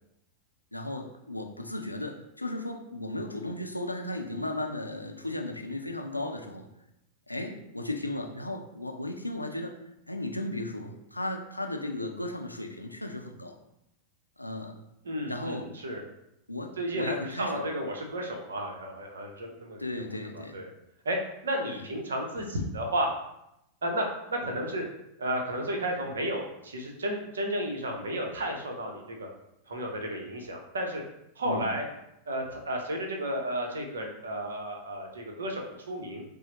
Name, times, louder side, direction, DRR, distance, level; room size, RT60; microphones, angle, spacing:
voice 1, 0.7-6.7 7.3-9.7 10.1-13.5 14.4-14.8 15.2-15.7 16.5-17.6 19.8-20.6 24.4-24.5 31.4-31.7, left 1 dB, 85° left, 3 dB, 0.4 m, -35 dB
voice 2, 15.0-16.0 16.8-19.8 20.1-20.7 21.0-21.2 21.4-23.1 23.8-24.8 25.2-29.3 29.7-31.0 31.4-31.8 32.3-36.2, right 1 dB, 70° right, 2 dB, 0.7 m, -33 dB
5.6 x 2.1 x 2.9 m, 0.84 s
figure-of-eight pair, 90°, 0 cm